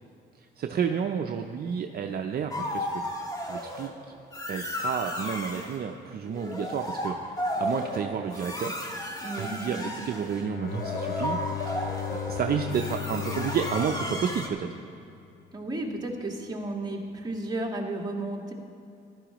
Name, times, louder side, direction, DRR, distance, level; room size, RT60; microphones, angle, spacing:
voice 1, 0.4-3.0 3.4-3.9 4.5-8.8 9.4-11.4 11.7-14.8, right 7 dB, 50° right, 4 dB, 0.6 m, -31 dB
sound 1, 2.5-3.9 4.3-5.8 6.3-14.5, left 1 dB, 20° left, 1.3 m, -34 dB
voice 2, 9.2-9.9 15.5-18.5, right 2 dB, 20° right, -1 dB, 1.8 m, -33 dB
Bowed string instrument, 10.3-15.3, left 12 dB, 50° left, 0.7 m, -36 dB
15.0 x 11.5 x 3.0 m, 2.6 s
cardioid pair, 90°, 20 cm